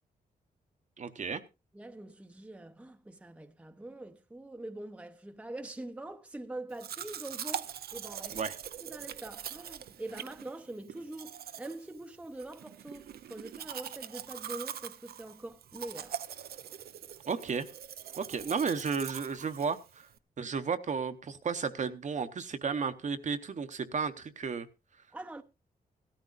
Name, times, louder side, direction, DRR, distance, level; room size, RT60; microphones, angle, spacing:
voice 1, 1.0-1.4 8.3-8.6 17.3-17.7 18.2-20.1 20.4-24.7, right 5 dB, 50° right, 0.9 m, -33 dB
voice 2, 1.7-8.5 8.8-16.2 25.1-25.4, right 2 dB, 10° right, 0.7 m, -44 dB
Domestic sounds home sounds, 6.8-20.2, right 9 dB, 80° right, 0.6 m, -43 dB
17.0 x 13.0 x 2.5 m
wide cardioid pair, 120°, 16 cm